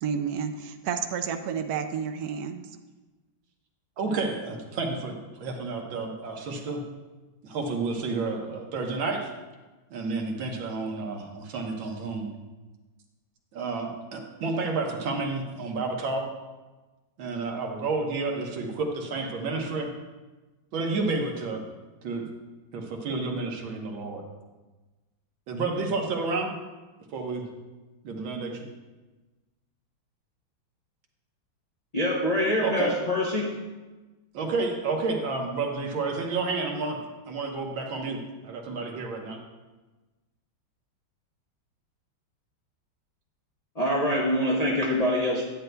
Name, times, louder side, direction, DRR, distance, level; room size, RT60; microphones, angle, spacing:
voice 1, 0.0-2.6, right 7 dB, 75° right, 7 dB, 0.9 m, -30 dB
voice 2, 4.0-6.8 7.4-9.3 9.9-12.3 13.5-16.3 17.2-19.9 20.7-21.6 22.0-22.3 22.7-24.2 25.5-26.5 27.1-27.5 28.0-28.7 32.6-32.9 34.3-37.0 37.3-39.4, right 3 dB, 90° right, 1 dB, 1.8 m, -30 dB
voice 3, 31.9-33.6 43.8-45.4, left 1 dB, 80° left, -3 dB, 0.3 m, -25 dB
10.5 x 9.2 x 2.2 m, 1.2 s
omnidirectional pair, 2.1 m